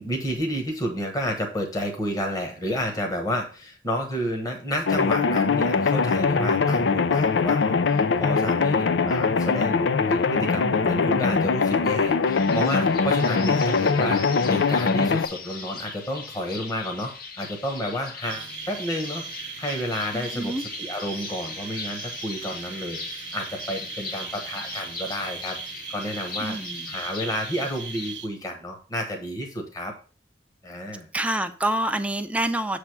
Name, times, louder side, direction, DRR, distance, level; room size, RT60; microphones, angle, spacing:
voice 1, 0.0-26.6 26.9-29.9 30.6-31.1, equal, 20° left, 1.1 m, -31 dB
sound 1, 4.9-15.3, left 4 dB, 80° left, 0.5 m, -22 dB
sound 2, 12.3-28.1, left 5 dB, 55° left, 0.9 m, -39 dB
sound 3, 18.2-28.3, right 8 dB, 75° right, 0.9 m, -39 dB
voice 2, 20.1-20.6 26.4-26.9 31.1-32.8, right 1 dB, 10° right, 0.5 m, -27 dB
7.1 x 3.4 x 5.9 m
head